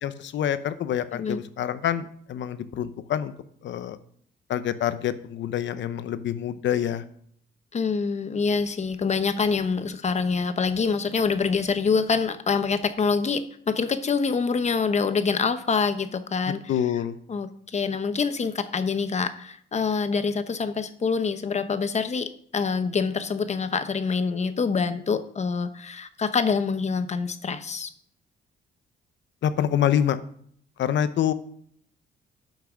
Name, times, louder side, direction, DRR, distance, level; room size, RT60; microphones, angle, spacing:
voice 1, 0.0-3.3 3.6-4.0 4.5-7.0 16.7-17.2 29.4-30.2 30.8-31.3, left 10 dB, 65° left, 13 dB, 0.8 m, -26 dB
voice 2, 7.7-16.6 17.3-27.9, left 5 dB, 35° left, 11 dB, 0.9 m, -26 dB
9.0 x 5.8 x 6.2 m, 0.63 s
cardioid pair, 90°, 20 cm